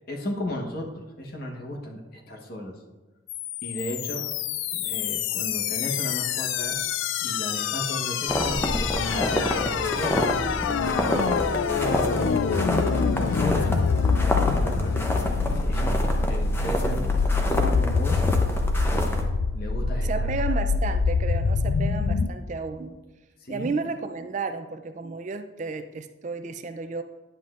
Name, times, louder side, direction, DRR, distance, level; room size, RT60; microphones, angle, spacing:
voice 1, 0.0-2.8 3.6-4.2 4.7-6.7 7.2-13.8 14.5-15.1 15.5-18.6 18.9-20.4 23.4-23.7, left 1 dB, 50° left, 1 dB, 1.0 m, -35 dB
sound 1, 3.3-22.3, left 5 dB, 75° left, 0.4 m, -26 dB
sound 2, 8.3-19.2, left 1 dB, 10° left, 0.6 m, -28 dB
voice 2, 20.0-23.0 23.5-27.0, right 4 dB, 40° right, 9 dB, 0.3 m, -32 dB
10.0 x 7.6 x 2.4 m, 1.2 s
head